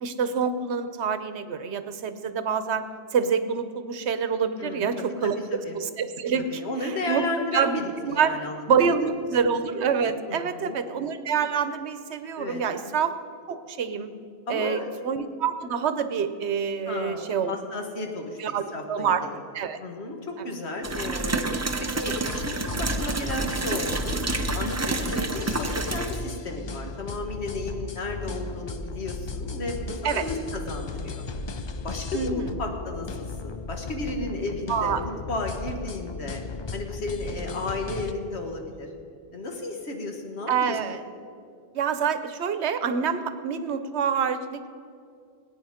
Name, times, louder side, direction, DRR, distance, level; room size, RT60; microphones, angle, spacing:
voice 1, 0.0-5.3 5.7-7.2 7.5-8.3 8.7-13.1 13.5-14.1 14.5-17.5 18.4-18.6 18.9-19.2 19.5-19.8 30.0-30.2 32.1-32.5 34.7-35.0 40.5-41.0 41.7-44.7, right 6 dB, 85° right, 11 dB, 1.0 m, -26 dB
voice 2, 4.6-5.8 6.4-8.6 9.3-9.4 10.3-10.8 12.4-12.6 14.5-15.0 16.9-19.4 19.8-24.2 24.5-31.3 31.8-36.4 36.7-38.9 39.3-40.8, left 2 dB, 80° left, 3 dB, 1.7 m, -33 dB
sound 1, 20.8-26.2, right 3 dB, 25° right, 0.4 m, -29 dB
sound 2, 22.0-38.1, left 3 dB, 50° left, 0.3 m, -35 dB
19.0 x 9.2 x 5.0 m, 2.4 s
omnidirectional pair, 1.1 m